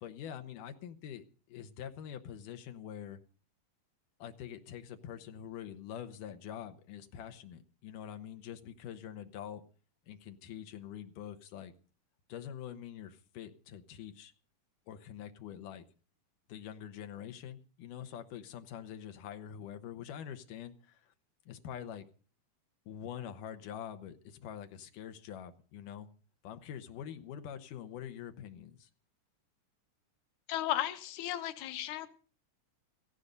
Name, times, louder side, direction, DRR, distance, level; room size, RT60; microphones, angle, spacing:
voice 1, 0.0-3.2 4.2-9.6 10.1-11.7 12.3-14.3 14.9-15.8 16.5-21.1 21.5-22.0 22.9-26.1 26.4-28.9, left 9 dB, 85° left, 7 dB, 2.7 m, -45 dB
voice 2, 30.5-32.1, left 13 dB, 70° left, 9 dB, 2.5 m, -35 dB
17.5 x 15.0 x 3.9 m, 0.39 s
omnidirectional pair, 3.6 m